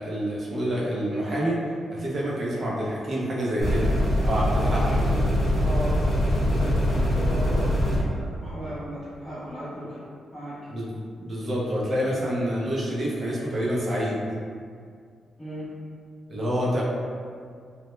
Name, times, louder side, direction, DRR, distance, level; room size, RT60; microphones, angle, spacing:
voice 1, 0.0-3.9 4.2-4.8 10.7-14.2 16.3-16.8, equal, 40° right, -6 dB, 0.5 m, -27 dB
sound 1, 3.6-8.0, equal, 50° left, 0.8 m, -23 dB
voice 2, 4.6-5.2 5.6-6.0 6.2-10.0 10.3-10.5 15.4-15.7, equal, 5° right, -16 dB, 0.7 m, -36 dB
2.1 x 2.1 x 3.0 m, 2.1 s
wide cardioid pair, 135°, 0 cm